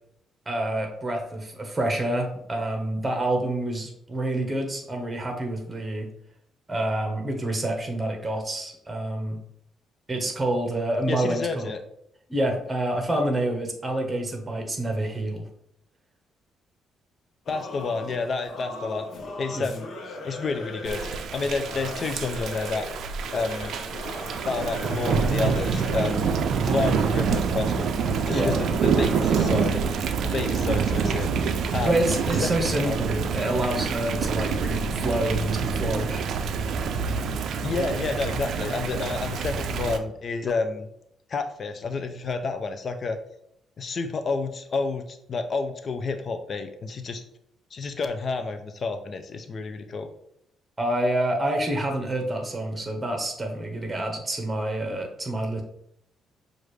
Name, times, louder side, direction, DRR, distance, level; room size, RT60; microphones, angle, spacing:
voice 1, 0.5-6.1 6.7-9.4 10.1-11.7 12.3-15.5 19.5-19.7 28.3-28.5 31.8-36.3 50.8-55.6, right 1 dB, 20° right, 3 dB, 1.1 m, -27 dB
voice 2, 11.1-11.8 17.5-19.0 19.4-22.9 23.3-23.7 24.5-26.3 26.6-27.9 28.3-29.8 30.2-31.3 31.7-32.0 32.4-33.0 37.6-40.9 41.3-43.2 43.8-47.2 47.7-50.1, left 4 dB, 45° left, 7 dB, 0.5 m, -30 dB
Singing / Musical instrument, 17.5-26.3, left 2 dB, 65° left, 1.0 m, -39 dB
Thunder / Rain, 20.9-40.0, right 6 dB, 70° right, 0.4 m, -26 dB
Bass guitar, 33.4-37.5, left 1 dB, ahead, 0.9 m, -44 dB
6.3 x 2.5 x 3.2 m, 0.74 s
cardioid pair, 90°, 0 cm